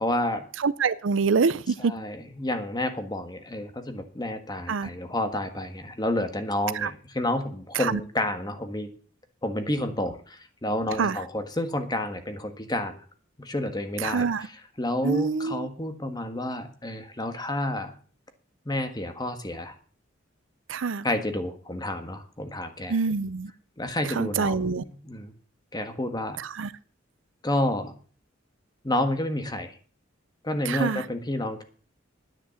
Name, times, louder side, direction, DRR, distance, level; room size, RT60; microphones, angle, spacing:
voice 1, 0.0-0.5 1.8-8.9 9.4-13.0 13.4-17.9 18.6-19.7 21.0-23.0 23.8-25.3 25.7-26.4 27.4-27.9 28.8-29.7 30.4-31.6, left 1 dB, 20° left, 1.6 m, -30 dB
voice 2, 0.6-1.9 4.7-4.9 6.8-6.9 7.8-8.0 11.0-11.2 14.0-14.4 15.0-15.7 20.7-21.1 22.9-23.5 24.1-24.8 26.4-26.7 30.7-31.0, right 5 dB, 70° right, 0.6 m, -25 dB
10.0 x 9.8 x 7.0 m
head